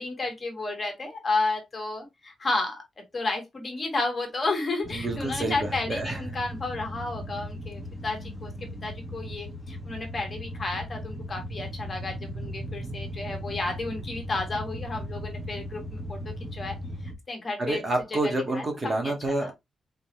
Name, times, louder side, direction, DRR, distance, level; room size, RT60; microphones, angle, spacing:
voice 1, 0.0-8.5 8.8-16.8 17.3-17.8 18.2-19.1 19.4-19.5, left 3 dB, 30° left, 1.5 m, -32 dB
sound 1, 4.8-17.1, equal, 5° right, 1.4 m, -37 dB
voice 2, 4.9-6.2 17.6-19.5, right 2 dB, 30° right, 1.5 m, -28 dB
4.2 x 3.8 x 3.0 m
wide cardioid pair, 150°, 0 cm